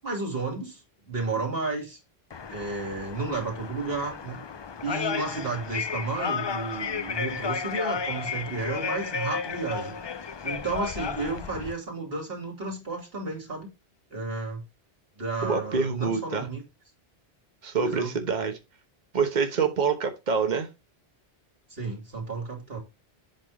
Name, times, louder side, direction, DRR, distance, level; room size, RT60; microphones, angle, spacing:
voice 1, 0.0-2.0 2.5-4.4 4.8-10.0 10.4-13.7 14.1-14.6 15.2-16.6 17.8-18.1 21.7-22.8, right 3 dB, 65° right, 3.0 m, -32 dB
sound 1, 2.3-11.7, left 5 dB, 45° left, 0.3 m, -33 dB
voice 2, 15.4-16.5 17.6-18.6 19.1-20.7, right 5 dB, 45° right, 1.3 m, -26 dB
8.0 x 3.7 x 4.9 m
omnidirectional pair, 1.1 m